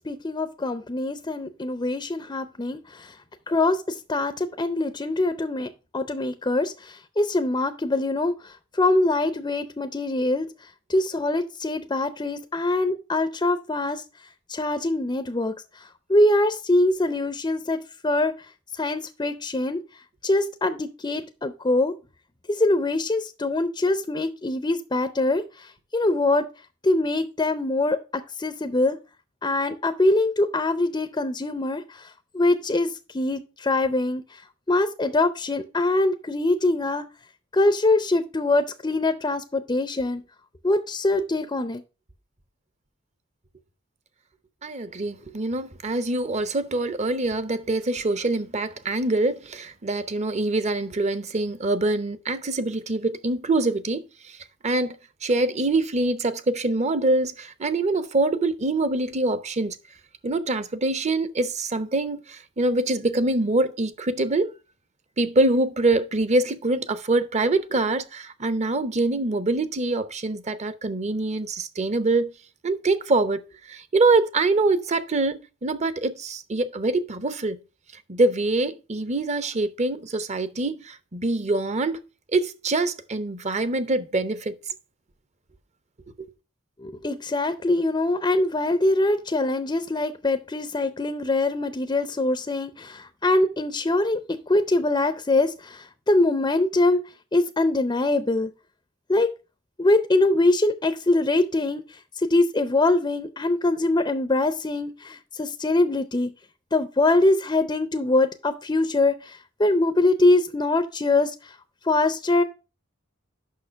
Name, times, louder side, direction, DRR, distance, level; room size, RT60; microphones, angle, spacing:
voice 1, 0.1-3.1 3.5-8.3 8.8-10.5 10.9-14.0 14.5-15.5 16.1-18.3 18.8-19.8 20.2-21.9 22.6-25.4 25.9-26.5 26.8-29.0 29.4-31.8 32.3-34.2 34.7-37.1 37.5-40.2 40.6-41.8 86.8-97.0 97.3-98.5 99.1-99.3 99.8-101.8 102.2-106.3 106.7-109.3 109.6-111.3 111.9-112.4, left 2 dB, 20° left, 0.5 m, -23 dB
voice 2, 44.6-54.4 54.6-55.0 55.2-59.8 60.2-64.5 65.2-72.3 72.6-73.4 73.7-77.6 78.1-82.0 82.3-84.5 86.2-86.3, right 2 dB, 35° right, 0.7 m, -24 dB
6.5 x 5.8 x 5.6 m
head